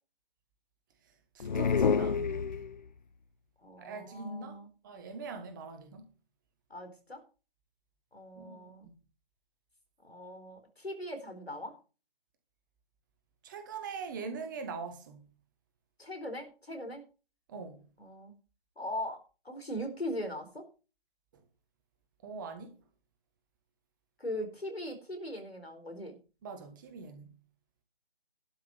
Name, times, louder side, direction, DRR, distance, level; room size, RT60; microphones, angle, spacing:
voice 1, 1.0-2.6 3.8-6.1 8.4-8.9 13.4-15.3 17.5-17.9 21.3-21.4 22.2-22.8 26.4-27.3, right 4 dB, 20° right, 1.5 m, -43 dB
sound 1, 1.4-3.0, left 6 dB, 50° left, 0.6 m, -28 dB
voice 2, 3.6-4.7 6.7-7.2 8.1-8.9 10.0-11.7 16.0-17.0 18.0-18.3 18.8-19.2 19.4-20.6 24.2-26.2, equal, 85° left, 4.2 m, -40 dB
12.0 x 6.2 x 6.5 m
figure-of-eight pair, 150°, 30 cm